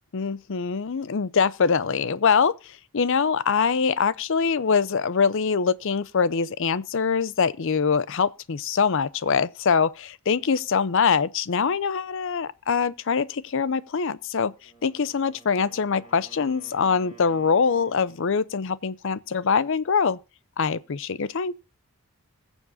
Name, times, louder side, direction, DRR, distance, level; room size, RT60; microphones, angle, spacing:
voice 1, 0.1-20.2 20.6-21.5, left 5 dB, 55° left, 0.5 m, -24 dB
Wind instrument woodwind instrument, 14.5-18.4, right 3 dB, 20° left, 6.0 m, -53 dB
21.5 x 7.2 x 2.6 m
head